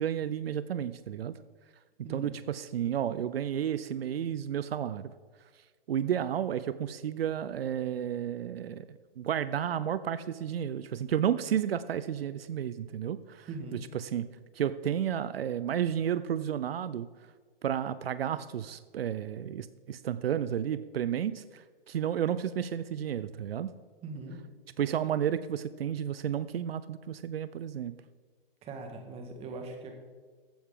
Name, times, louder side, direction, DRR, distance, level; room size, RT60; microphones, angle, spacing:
voice 1, 0.0-1.4 2.1-5.1 5.9-14.3 14.5-17.1 17.6-23.7 24.8-27.9, right 9 dB, 85° right, 15 dB, 0.6 m, -32 dB
voice 2, 2.0-2.3 13.5-13.8 24.0-24.4 28.6-29.9, right 3 dB, 20° right, 4 dB, 1.7 m, -41 dB
14.5 x 9.4 x 3.8 m, 1.5 s
hypercardioid pair, 145°, 29 cm